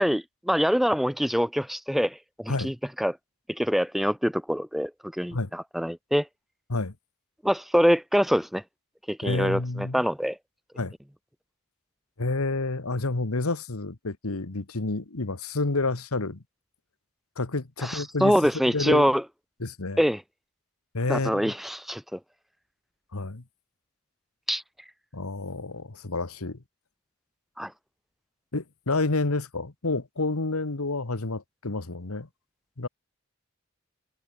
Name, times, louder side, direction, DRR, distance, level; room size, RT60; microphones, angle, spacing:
voice 1, 0.0-3.2 3.5-6.3 7.4-8.6 9.1-10.4 17.8-19.2 20.0-20.2 21.1-22.2 24.5-24.6 27.6-27.7, equal, ahead, 0.7 m, -25 dB
voice 2, 9.2-10.0 10.8-10.9 12.2-16.4 17.4-18.3 18.7-19.1 19.6-20.0 20.9-21.5 23.1-23.4 25.1-26.6 28.5-32.3 32.8-32.9, left 3 dB, 80° left, 1.4 m, -29 dB
head